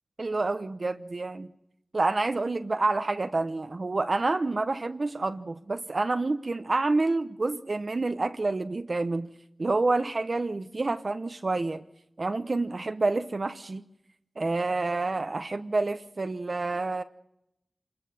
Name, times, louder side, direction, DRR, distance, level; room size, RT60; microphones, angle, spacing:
voice 1, 0.2-1.5 1.9-9.3 9.6-11.8 12.2-13.8 14.4-17.0, right 3 dB, 55° right, 9 dB, 0.9 m, -28 dB
25.5 x 21.0 x 7.0 m, 0.81 s
cardioid pair, 45°, 0 cm